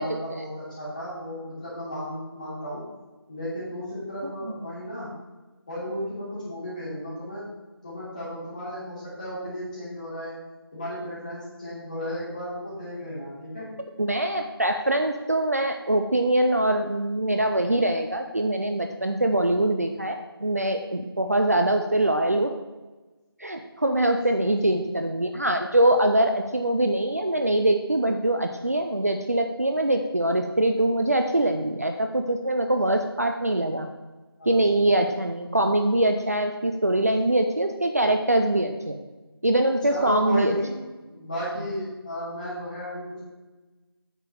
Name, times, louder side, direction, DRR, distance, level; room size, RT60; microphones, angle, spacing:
voice 1, 0.0-2.8 3.3-5.1 5.7-7.5 7.8-10.4 10.7-13.7 24.3-24.9 34.4-34.9 39.8-43.2, equal, 20° left, -10 dB, 3.0 m, -34 dB
voice 2, 14.0-22.5 23.4-33.9 34.5-39.0 39.4-40.6, right 1 dB, 40° right, 5 dB, 0.5 m, -23 dB
8.7 x 6.7 x 4.6 m, 1.2 s
figure-of-eight pair, 170°, 13 cm